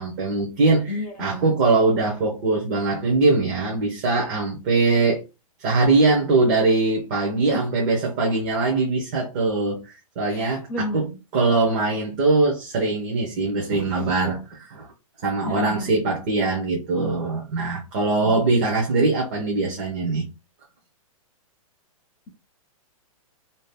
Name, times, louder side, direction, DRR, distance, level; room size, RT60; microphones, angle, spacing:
voice 1, 0.0-5.2 5.6-11.0 11.3-14.9 15.2-20.3, right 3 dB, 30° right, 0.8 m, -22 dB
voice 2, 0.9-1.5 7.5-7.7 10.3-11.2 15.4-16.0 18.2-18.5, left 1 dB, 10° left, 0.6 m, -31 dB
2.7 x 2.4 x 3.4 m
hypercardioid pair, 165°, 18 cm